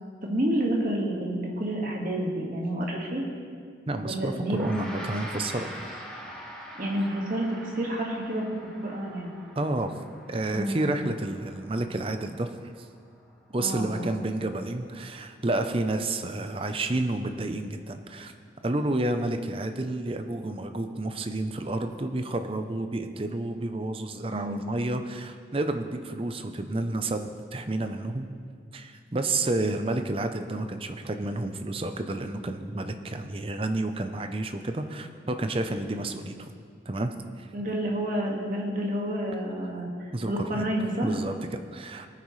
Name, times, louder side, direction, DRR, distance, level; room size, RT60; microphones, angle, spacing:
voice 1, 0.2-3.3 4.0-4.7 6.8-8.5 8.8-9.4 10.5-10.9 13.6-14.2 24.3-24.7 37.5-41.1, right 1 dB, 45° right, -1 dB, 1.8 m, -29 dB
voice 2, 3.9-5.7 9.6-9.9 10.3-12.5 12.8-12.9 13.5-18.3 18.6-28.3 28.7-36.5 36.9-37.5 40.1-40.7 41.0-42.1, right 2 dB, 30° right, 7 dB, 0.6 m, -30 dB
Gong, 4.4-14.0, equal, 5° left, 1.3 m, -44 dB
19.0 x 9.5 x 3.2 m, 2.1 s
head